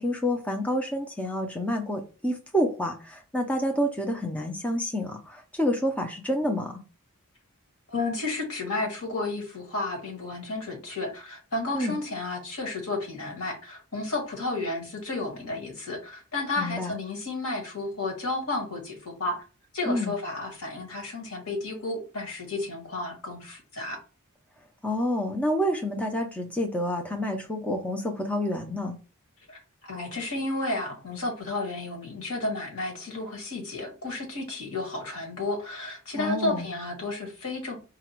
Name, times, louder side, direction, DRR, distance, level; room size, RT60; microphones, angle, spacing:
voice 1, 0.0-6.8 11.7-11.9 16.6-16.9 19.8-20.1 24.8-29.0 36.2-36.7, equal, 5° left, 3 dB, 0.5 m, -28 dB
voice 2, 7.9-19.4 19.7-24.0 29.5-37.8, left 2 dB, 90° left, 2 dB, 1.8 m, -32 dB
4.9 x 2.3 x 4.4 m, 0.34 s
head